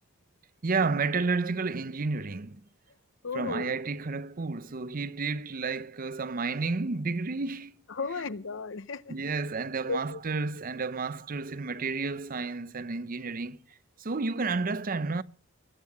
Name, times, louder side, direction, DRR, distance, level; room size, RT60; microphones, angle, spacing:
voice 1, 0.6-2.6 3.3-7.7 9.1-13.6 14.0-15.2, right 4 dB, 45° right, 0.7 m, -31 dB
voice 2, 3.2-3.7 7.9-9.1 9.9-10.2, left 4 dB, 65° left, 0.8 m, -35 dB
20.5 x 9.6 x 7.2 m
head